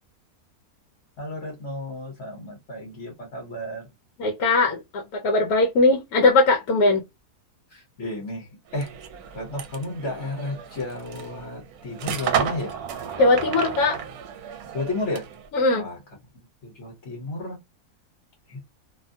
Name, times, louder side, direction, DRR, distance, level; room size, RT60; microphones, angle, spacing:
voice 1, 1.2-3.8 6.8-6.9 7.7-8.9 9.3-12.8 14.7-15.3 15.7-16.0 16.6-17.6 18.5-18.6, left 2 dB, 55° left, 1.3 m, -33 dB
voice 2, 4.2-7.0 13.2-14.0 15.5-15.9, left 2 dB, 75° left, 1.1 m, -20 dB
sound 1, 8.7-15.5, right 8 dB, 75° right, 1.0 m, -32 dB
2.8 x 2.1 x 2.6 m
omnidirectional pair, 1.6 m